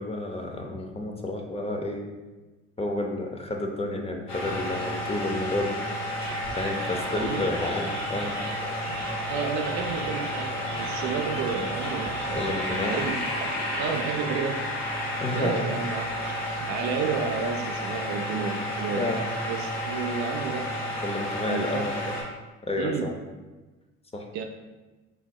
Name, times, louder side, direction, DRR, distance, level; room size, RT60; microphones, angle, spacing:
voice 1, 0.0-2.0 2.8-5.8 6.5-8.4 12.3-13.0 15.2-15.6 17.9-18.0 18.3-18.4 18.9-19.2 21.0-22.1 22.6-23.1 24.1-24.3, left 2 dB, 15° left, 2 dB, 0.5 m, -30 dB
sound 1, 4.3-22.2, equal, 75° left, 1.2 m, -31 dB
sound 2, 6.2-13.9, right 2 dB, 85° right, 1.4 m, -38 dB
voice 2, 7.1-7.4 9.3-14.6 15.3-19.1 19.5-20.7 21.5-21.9 22.8-23.1 24.3-24.4, right 5 dB, 50° right, 5 dB, 0.4 m, -32 dB
5.1 x 2.6 x 2.3 m, 1.2 s
hypercardioid pair, 65°, 36 cm